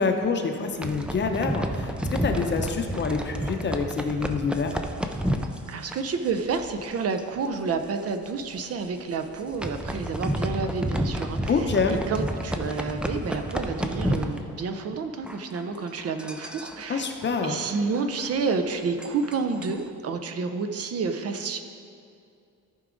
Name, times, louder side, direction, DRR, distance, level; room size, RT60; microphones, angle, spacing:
voice 1, 0.0-4.8 11.5-12.0 16.9-17.6, left 4 dB, 35° left, 5 dB, 0.7 m, -26 dB
sound 1, 0.6-6.9 7.2-7.5 7.7-7.8 8.4-8.6 9.2-15.0 15.2-19.9, equal, 5° right, 0.4 m, -31 dB
voice 2, 5.7-17.1 17.4-21.6, right 4 dB, 50° right, 7 dB, 0.6 m, -30 dB
14.0 x 4.8 x 3.8 m, 2.4 s
cardioid pair, 140°, 32 cm